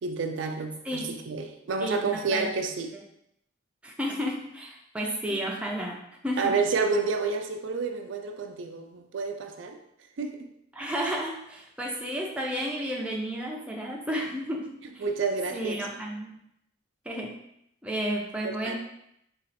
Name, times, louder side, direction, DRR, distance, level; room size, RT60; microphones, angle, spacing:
voice 1, 0.0-2.9 5.3-5.4 6.4-9.8 10.2-10.5 15.0-15.8 18.4-18.7, right 4 dB, 75° right, 5 dB, 0.4 m, -29 dB
voice 2, 1.8-2.5 3.8-6.5 10.7-15.0 15.5-16.3 17.0-17.4 17.8-18.7, equal, 5° right, -2 dB, 0.5 m, -32 dB
4.1 x 2.4 x 4.0 m, 0.76 s
head